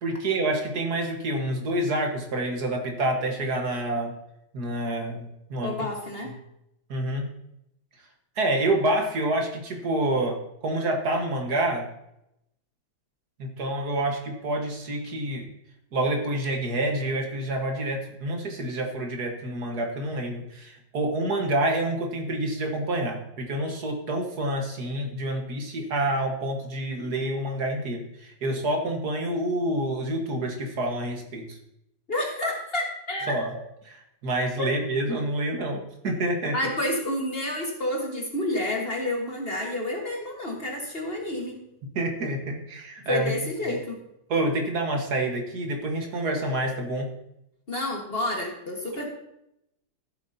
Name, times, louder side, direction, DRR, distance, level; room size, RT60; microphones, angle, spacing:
voice 1, 0.0-4.1 4.5-5.7 6.9-7.3 8.4-10.4 10.6-11.9 13.4-15.5 15.9-31.6 33.3-33.5 34.2-36.6 42.0-43.3 43.7-43.8 44.3-47.1, right 1 dB, 60° right, 2 dB, 1.9 m, -28 dB
voice 2, 5.6-6.3 32.1-33.4 34.6-34.7 36.5-41.6 43.1-44.0 47.7-49.1, left 1 dB, 35° left, 0 dB, 1.6 m, -29 dB
14.5 x 7.8 x 2.7 m, 0.81 s
omnidirectional pair, 1.9 m